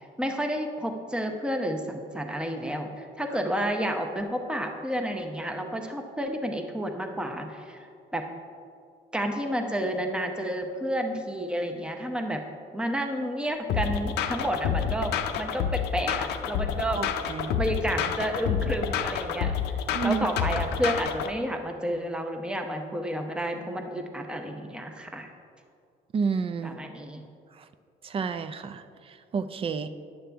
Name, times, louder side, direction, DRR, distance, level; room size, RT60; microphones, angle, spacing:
voice 1, 0.0-7.9 8.1-8.2 9.1-12.4 12.7-17.0 17.6-19.6 20.0-25.3 26.6-27.2, equal, 5° right, 4 dB, 0.7 m, -30 dB
sound 1, 13.7-21.3, left 8 dB, 80° left, 0.5 m, -28 dB
voice 2, 17.0-17.6 19.9-20.3 26.1-26.8 28.0-29.9, right 5 dB, 35° right, 11 dB, 0.4 m, -30 dB
10.0 x 6.6 x 3.4 m, 2.3 s
cardioid pair, 110°, 17 cm